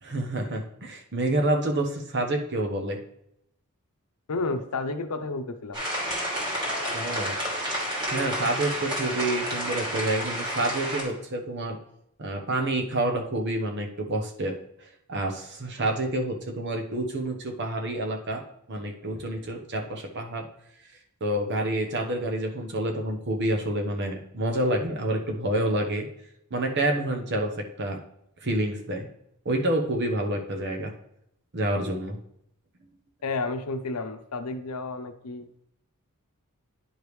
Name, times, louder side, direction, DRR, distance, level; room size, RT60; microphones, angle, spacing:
voice 1, 0.0-3.0 6.9-7.4 8.1-11.8 12.2-18.4 18.7-20.5 21.2-26.1 26.5-28.0 28.4-29.1 29.4-30.9 31.5-32.2, right 1 dB, 50° right, 3 dB, 1.0 m, -28 dB
voice 2, 4.3-5.8 33.2-35.5, left 3 dB, 85° left, 8 dB, 0.7 m, -31 dB
sound 1, 5.7-11.0, equal, 20° right, 2.3 m, -30 dB
10.0 x 5.1 x 3.2 m, 0.76 s
head